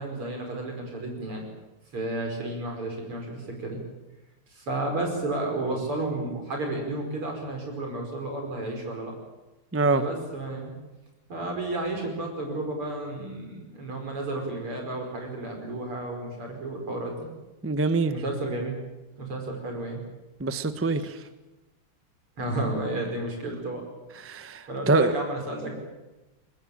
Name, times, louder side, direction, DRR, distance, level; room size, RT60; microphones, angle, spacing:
voice 1, 0.0-1.4 1.9-3.8 4.5-9.1 9.9-10.7 11.3-17.3 18.1-18.8 19.2-20.0 20.9-21.1 22.4-23.8 24.7-25.7, right 2 dB, 90° right, 2 dB, 6.1 m, -32 dB
voice 2, 17.6-18.1 20.4-21.2 24.2-25.1, right 3 dB, 15° right, 11 dB, 0.4 m, -24 dB
22.5 x 20.0 x 8.9 m, 1.1 s
omnidirectional pair, 2.3 m